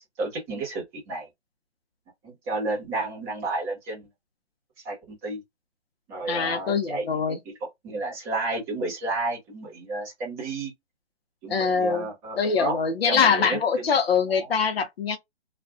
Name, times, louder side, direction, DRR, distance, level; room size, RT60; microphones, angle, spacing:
voice 1, 0.2-1.3 2.2-4.1 4.8-5.4 6.1-7.5 7.8-10.7 11.4-12.8 13.1-13.9 14.3-14.5, right 2 dB, 15° right, 1.1 m, -31 dB
voice 2, 6.3-7.4 11.5-12.1 12.4-15.2, left 6 dB, 60° left, 0.8 m, -23 dB
2.5 x 2.4 x 2.4 m
hypercardioid pair, 155°, 35 cm